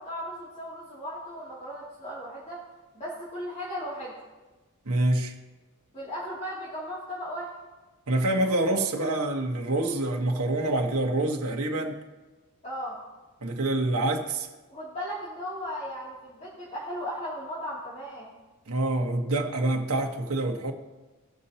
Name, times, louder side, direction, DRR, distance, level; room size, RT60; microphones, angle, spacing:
voice 1, 0.0-2.6 2.9-4.1 5.9-7.5 12.6-13.0 14.7-18.3, equal, 30° left, -8 dB, 2.7 m, -36 dB
voice 2, 4.8-5.3 8.1-12.0 13.4-14.5 18.7-20.7, right 2 dB, 75° right, 1 dB, 1.4 m, -26 dB
19.5 x 6.8 x 2.9 m, 1.2 s
head